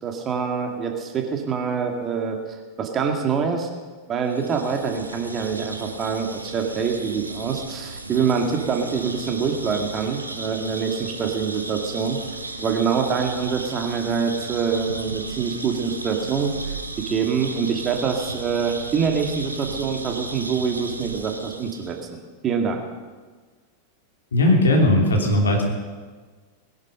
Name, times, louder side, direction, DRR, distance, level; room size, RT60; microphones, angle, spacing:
voice 1, 0.0-2.4 2.8-3.7 4.1-12.2 12.6-16.5 17.1-22.8, right 6 dB, 25° right, 3 dB, 2.3 m, -25 dB
sound 1, 4.3-22.0, right 2 dB, 80° right, 1.0 m, -35 dB
voice 2, 24.3-25.6, left 1 dB, 70° left, 1 dB, 3.2 m, -18 dB
20.0 x 10.5 x 5.7 m, 1.4 s
figure-of-eight pair, 90°, 0 cm